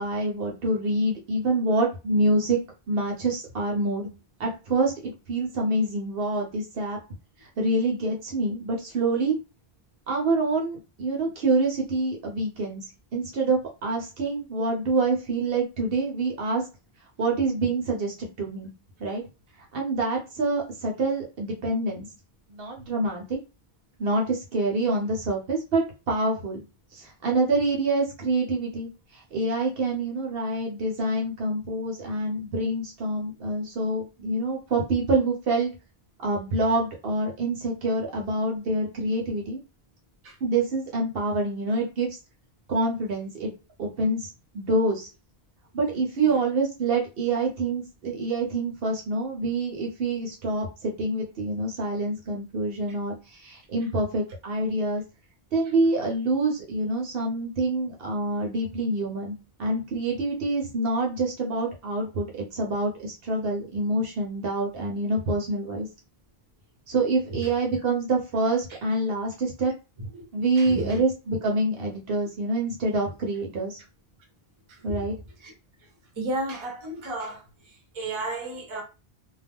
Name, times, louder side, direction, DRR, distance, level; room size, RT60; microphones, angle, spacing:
voice 1, 0.0-2.6 2.9-4.1 4.4-7.0 7.6-9.4 10.1-12.8 13.1-16.6 17.2-18.7 19.0-19.2 19.7-22.1 22.5-23.4 24.0-25.8 26.1-26.6 26.9-35.7 36.2-39.6 40.4-42.1 42.7-43.5 43.8-45.1 45.7-55.0 55.5-65.9 66.9-69.7 70.3-73.8 74.8-75.1, right 2 dB, 65° right, 0.9 m, -26 dB
voice 2, 70.5-71.0 74.7-75.1 75.4-75.5 75.8-75.9 76.1-78.8, right 2 dB, 35° right, 0.7 m, -34 dB
2.2 x 2.1 x 3.4 m
omnidirectional pair, 1.1 m